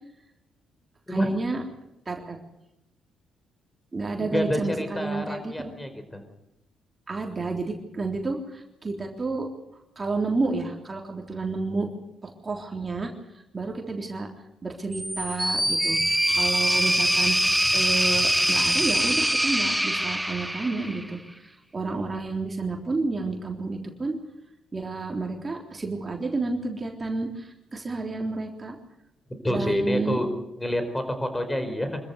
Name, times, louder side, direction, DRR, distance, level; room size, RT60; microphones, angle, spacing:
voice 1, 1.1-1.6 2.1-2.4 3.9-5.7 7.1-9.5 10.0-11.9 12.2-13.1 13.5-14.3 14.6-24.2 24.7-28.8 29.5-30.2, right 3 dB, 30° right, 1 dB, 3.6 m, -30 dB
voice 2, 4.2-6.2 29.4-30.3 30.6-32.0, equal, 10° left, 8 dB, 4.7 m, -28 dB
sound 1, 14.9-21.1, right 1 dB, 5° right, 1.0 m, -23 dB
25.5 x 14.0 x 8.1 m, 0.88 s
cardioid pair, 90°, 0 cm